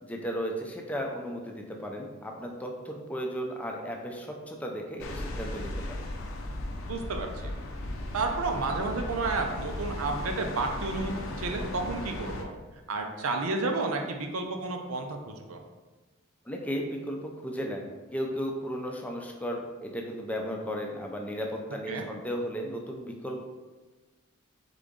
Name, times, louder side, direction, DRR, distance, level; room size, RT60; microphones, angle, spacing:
voice 1, 0.0-6.1 16.5-23.4, equal, 5° left, 1 dB, 0.4 m, -35 dB
sound 1, 5.0-12.4, left 1 dB, 75° left, 0.6 m, -36 dB
voice 2, 6.9-7.5 8.1-12.5 12.9-15.6 21.9-22.1, right 3 dB, 90° right, 3 dB, 0.6 m, -31 dB
3.9 x 3.7 x 3.7 m, 1.2 s
head